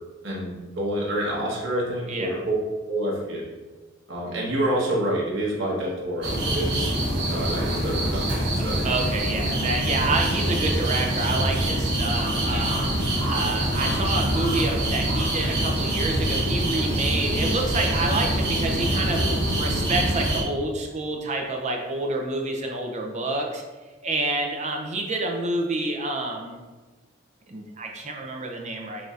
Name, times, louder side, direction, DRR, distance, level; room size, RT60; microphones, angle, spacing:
voice 1, 0.2-2.6 2.9-3.4 4.1-6.9 7.3-8.8, right 1 dB, 80° right, -5 dB, 1.1 m, -28 dB
voice 2, 2.1-2.4 8.8-19.2 19.5-23.6 24.0-26.6 27.5-29.1, right 2 dB, 35° right, 2 dB, 0.5 m, -28 dB
sound 1, 6.2-20.4, right 1 dB, 60° right, 1.3 m, -25 dB
5.9 x 2.6 x 2.4 m, 1.3 s
head